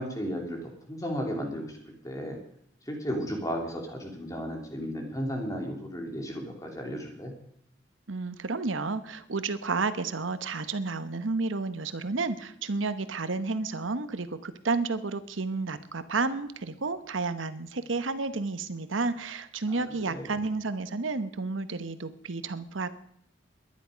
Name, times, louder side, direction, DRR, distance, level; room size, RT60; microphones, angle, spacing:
voice 1, 0.0-1.8 2.0-2.4 2.9-7.3 19.7-20.5, equal, 15° left, 1 dB, 3.0 m, -34 dB
voice 2, 8.1-22.9, right 3 dB, 90° right, 12 dB, 1.0 m, -31 dB
21.0 x 10.5 x 5.1 m, 0.71 s
head